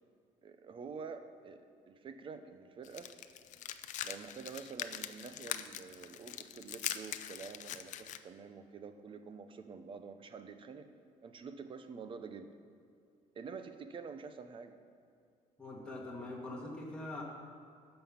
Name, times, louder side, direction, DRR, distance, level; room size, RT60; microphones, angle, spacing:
voice 1, 0.4-3.1 4.0-10.9 11.2-12.5 13.3-14.7, right 5 dB, 35° right, 9 dB, 0.8 m, -47 dB
sound 1, 2.8-8.2, left 11 dB, 60° left, 0.5 m, -42 dB
voice 2, 15.6-17.2, left 2 dB, 5° left, -4 dB, 2.1 m, -43 dB
12.5 x 5.6 x 7.1 m, 2.4 s
cardioid pair, 135°, 14 cm